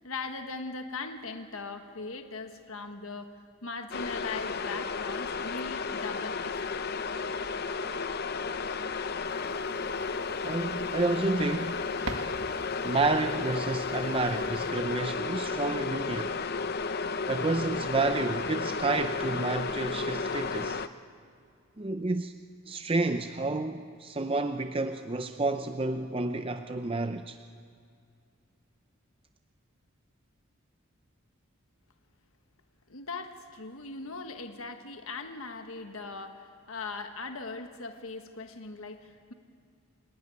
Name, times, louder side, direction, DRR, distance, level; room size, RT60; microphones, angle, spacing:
voice 1, 0.0-3.3 3.6-6.8 32.9-39.3, left 3 dB, 70° left, 6 dB, 1.5 m, -40 dB
sound 1, 3.9-20.9, left 4 dB, 45° left, 0.7 m, -33 dB
sound 2, 9.2-14.7, right 2 dB, 65° right, 1.8 m, -45 dB
voice 2, 10.4-11.9 12.8-16.4 17.3-20.8 21.8-22.3 22.7-27.4, right 3 dB, 25° right, 8 dB, 0.5 m, -30 dB
27.5 x 17.0 x 9.7 m, 2.3 s
head